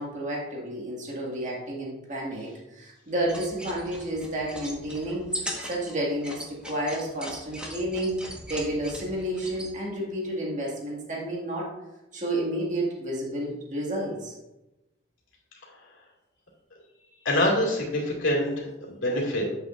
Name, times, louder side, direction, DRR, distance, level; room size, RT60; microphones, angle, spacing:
voice 1, 0.0-11.7 12.1-14.3, right 1 dB, 40° right, -3 dB, 1.9 m, -31 dB
sound 1, 3.2-9.7, equal, 5° right, 1.3 m, -39 dB
voice 2, 17.2-19.5, left 1 dB, 90° left, -2 dB, 2.3 m, -25 dB
9.2 x 7.6 x 2.5 m, 0.99 s
head